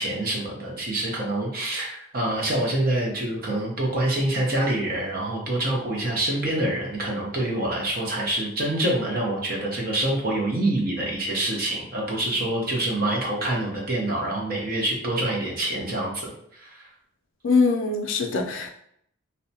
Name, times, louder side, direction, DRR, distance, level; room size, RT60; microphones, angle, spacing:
voice 1, 0.0-16.8, right 1 dB, 45° right, -2 dB, 0.7 m, -26 dB
voice 2, 17.4-18.7, left 4 dB, 65° left, 4 dB, 0.4 m, -22 dB
2.7 x 2.1 x 2.7 m, 0.70 s
head